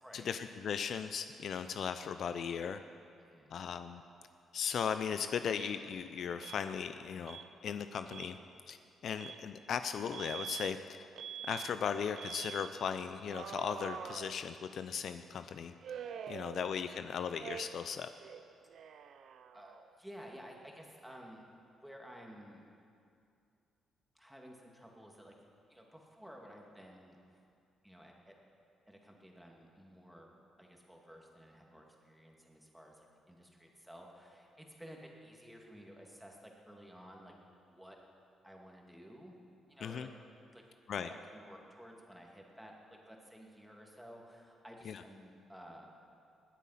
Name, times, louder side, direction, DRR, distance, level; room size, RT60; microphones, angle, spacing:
voice 1, 0.1-2.8 3.5-4.0 4.5-8.4 8.7-8.8 9.0-10.8 11.4-15.7 16.3-18.1 39.8-40.1 40.9-41.1 44.8-45.0, left 7 dB, 60° left, 10 dB, 0.5 m, -37 dB
voice 2, 3.2-3.6 16.6-16.7 19.5-21.4 21.8-22.7 24.1-25.3 25.7-27.4 27.8-28.3 28.9-30.3 30.6-37.3 37.7-38.0 38.4-39.3 39.7-40.1 40.5-42.7 43.1-45.9, equal, 5° right, 0 dB, 2.3 m, -54 dB
Alarm, 5.5-5.8 6.4-6.6 7.3-7.5 8.0-8.3 9.2-9.4 10.1-10.7 11.2-11.7 12.2-12.7 13.3-14.8 15.8-17.0 17.4-17.9 18.2-19.9, right 8 dB, 65° right, 0.6 m, -45 dB
20.5 x 8.4 x 5.7 m, 2.5 s
cardioid pair, 90°, 0 cm